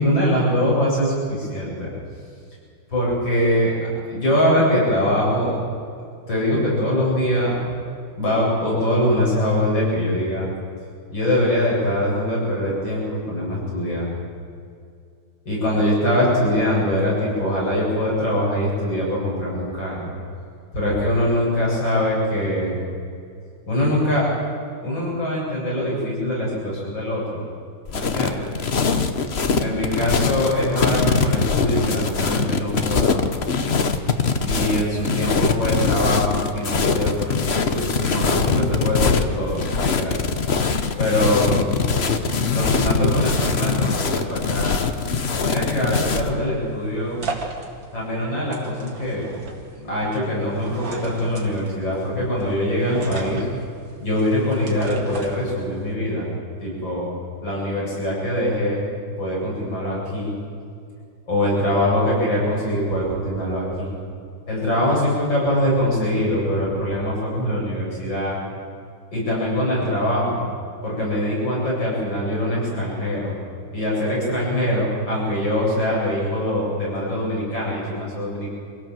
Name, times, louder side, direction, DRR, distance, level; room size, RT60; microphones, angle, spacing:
voice 1, 0.0-1.9 2.9-3.7 4.1-5.5 6.3-7.6 8.2-10.5 11.1-14.1 15.5-20.1 20.7-22.8 23.7-24.3 24.8-27.5 27.9-28.5 29.6-33.2 34.4-40.2 41.0-41.5 42.5-44.8 45.4-47.2 47.9-49.3 49.8-53.5 54.0-56.3 56.6-57.1 57.4-58.8 59.2-60.4 61.3-63.9 64.5-68.4 69.1-70.4 70.8-73.3 73.7-78.5, left 1 dB, 70° left, -5 dB, 8.9 m, -23 dB
sound 1, 27.9-46.3, left 5 dB, 40° left, 1.1 m, -22 dB
sound 2, 46.5-55.9, right 3 dB, 75° right, 3.0 m, -37 dB
26.5 x 16.5 x 7.7 m, 2.4 s
omnidirectional pair, 2.1 m